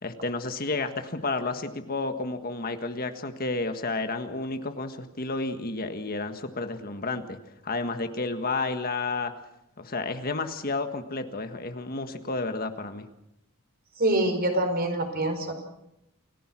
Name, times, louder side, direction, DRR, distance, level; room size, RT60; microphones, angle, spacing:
voice 1, 0.0-7.4 7.6-9.3 9.8-13.1, left 3 dB, 45° left, 8 dB, 1.6 m, -31 dB
voice 2, 14.0-15.5, right 1 dB, 45° right, 5 dB, 4.7 m, -25 dB
28.5 x 17.5 x 6.1 m, 0.83 s
head